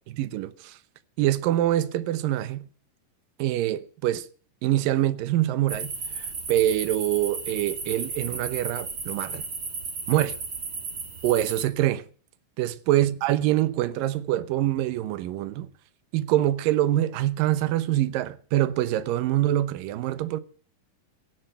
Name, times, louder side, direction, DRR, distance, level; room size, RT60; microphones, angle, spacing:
voice 1, 0.2-0.8 1.2-2.7 3.4-4.3 4.6-9.4 10.1-10.4 11.2-12.0 12.6-15.7 16.1-20.4, right 14 dB, 85° right, 2.6 m, -25 dB
sound 1, 5.7-11.6, right 4 dB, 30° right, 2.7 m, -34 dB
15.5 x 10.5 x 7.8 m
omnidirectional pair, 3.9 m